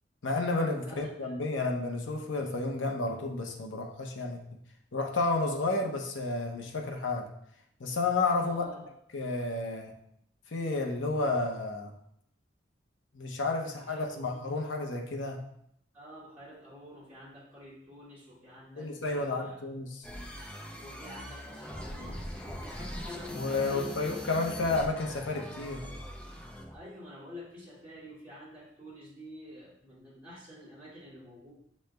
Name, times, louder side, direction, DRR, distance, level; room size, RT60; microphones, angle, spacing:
voice 1, 0.2-4.4 4.9-7.3 7.8-8.7 9.1-9.9 10.5-11.9 13.1-15.4 18.8-20.1 23.3-25.9, left 3 dB, 80° left, 1 dB, 0.7 m, -31 dB
voice 2, 0.8-1.3 8.4-8.8 13.6-14.4 15.9-19.5 20.8-24.2 26.7-31.5, left 1 dB, 10° right, -12 dB, 1.9 m, -48 dB
sound 1, 20.0-26.8, equal, 5° left, 0.4 m, -41 dB
7.5 x 3.2 x 2.2 m, 0.71 s
head